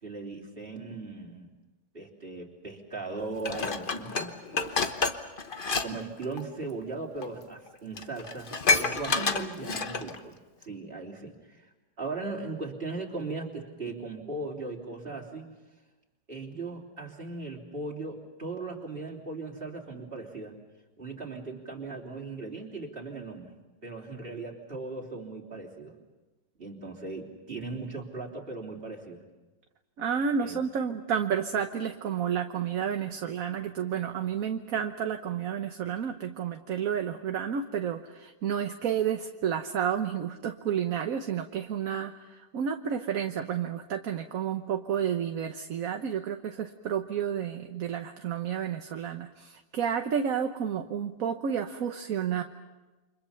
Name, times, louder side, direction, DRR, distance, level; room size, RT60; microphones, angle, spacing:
voice 1, 0.0-1.5 1.9-4.3 5.8-11.7 12.0-15.5 16.3-20.5 21.0-23.5 23.8-25.9 26.6-29.2 30.4-30.6, right 3 dB, 30° right, -1 dB, 3.6 m, -38 dB
Dishes pots and pans, 3.4-5.9 6.2-6.4 7.2-7.3 7.7-7.8 8.0-10.2 10.6-10.7, left 4 dB, 35° left, 1.1 m, -28 dB
voice 2, 30.0-52.4, right 8 dB, 55° right, 6 dB, 1.3 m, -31 dB
29.0 x 26.0 x 5.8 m, 1.2 s
omnidirectional pair, 2.0 m